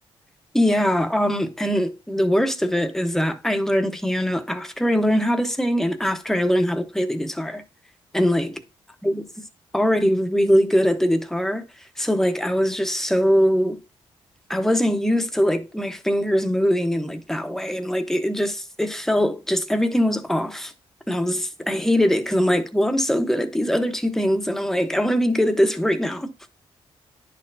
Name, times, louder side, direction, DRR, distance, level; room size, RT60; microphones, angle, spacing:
voice 1, 0.5-7.6 8.1-8.6 9.0-9.2 9.7-11.6 12.0-13.8 14.5-20.7 21.1-26.3, equal, 5° left, 0.9 m, -22 dB
10.5 x 4.3 x 2.7 m
cardioid pair, 95°, 10 cm